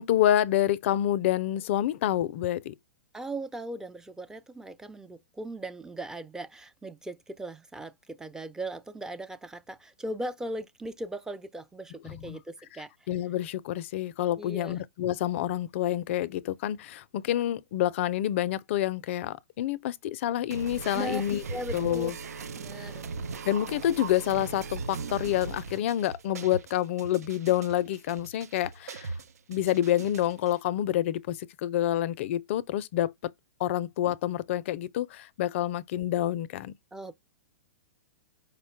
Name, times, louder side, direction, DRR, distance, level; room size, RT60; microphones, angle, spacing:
voice 1, 0.0-2.7 12.0-12.4 13.1-21.4 21.7-22.1 22.8-22.9 23.5-29.1 29.5-33.3 33.6-36.7, left 12 dB, 55° left, 0.4 m, -28 dB
voice 2, 3.1-12.9 14.4-14.8 20.9-21.2 21.5-22.1 22.6-23.0 36.9-37.1, right 1 dB, 5° right, 0.5 m, -38 dB
sound 1, 20.5-30.5, right 4 dB, 85° right, 0.6 m, -39 dB
5.0 x 2.2 x 4.4 m
hypercardioid pair, 130°, 8 cm